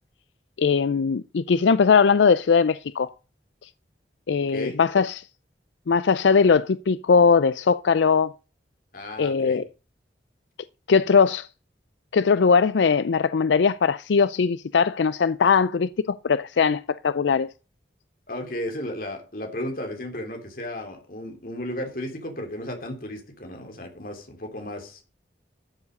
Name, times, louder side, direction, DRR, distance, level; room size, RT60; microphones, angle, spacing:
voice 1, 0.6-3.1 3.6-3.7 4.3-5.3 5.9-8.3 9.2-9.7 10.9-11.5 12.1-17.5, left 5 dB, 85° left, 0.4 m, -20 dB
voice 2, 4.5-4.8 8.9-9.6 18.3-25.0, left 1 dB, 50° left, 3.5 m, -34 dB
13.0 x 7.3 x 5.3 m
head